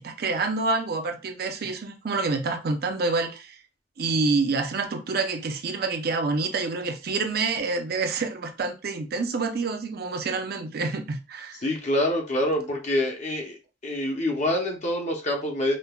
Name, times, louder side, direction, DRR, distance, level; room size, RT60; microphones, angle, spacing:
voice 1, 0.0-3.6 4.0-11.6, right 3 dB, 55° right, 0.5 m, -27 dB
voice 2, 11.6-13.6 13.8-15.8, left 1 dB, 40° left, 0.6 m, -26 dB
5.1 x 2.1 x 2.2 m
head